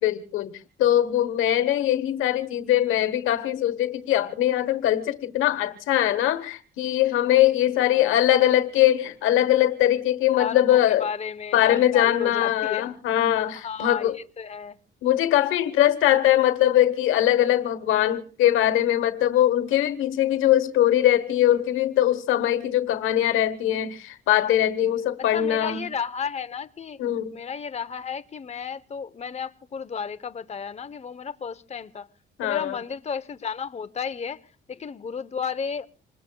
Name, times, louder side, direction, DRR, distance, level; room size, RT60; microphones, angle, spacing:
voice 1, 0.0-0.5 0.8-11.1 11.5-14.2 15.0-25.9 27.0-27.4 32.4-32.8, left 12 dB, 90° left, 1.2 m, -21 dB
voice 2, 7.8-8.2 10.4-12.9 13.5-14.1 14.4-14.8 25.3-27.0 27.3-32.1 32.4-34.4 34.7-35.9, left 6 dB, 35° left, 0.9 m, -33 dB
27.0 x 20.5 x 2.3 m
cardioid pair, 90°, 20 cm